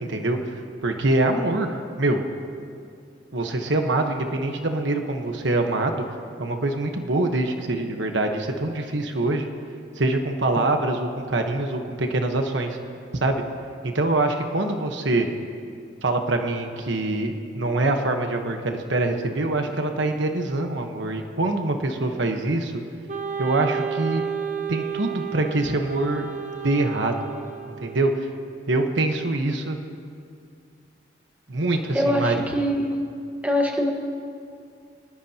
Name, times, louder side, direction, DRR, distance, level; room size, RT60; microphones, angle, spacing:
voice 1, 0.0-2.2 3.3-6.0 6.4-9.5 10.0-12.8 13.2-13.4 13.8-15.3 16.0-22.7 23.4-24.2 24.7-26.3 26.6-27.2 27.8-28.3 28.7-29.8 31.5-32.3, right 2 dB, 80° right, 4 dB, 1.2 m, -24 dB
Wind instrument woodwind instrument, 23.1-28.2, right 7 dB, 40° right, 1.3 m, -32 dB
voice 2, 31.9-32.9 33.4-33.9, equal, 10° right, 1 dB, 1.5 m, -23 dB
26.0 x 18.5 x 2.9 m, 2.4 s
head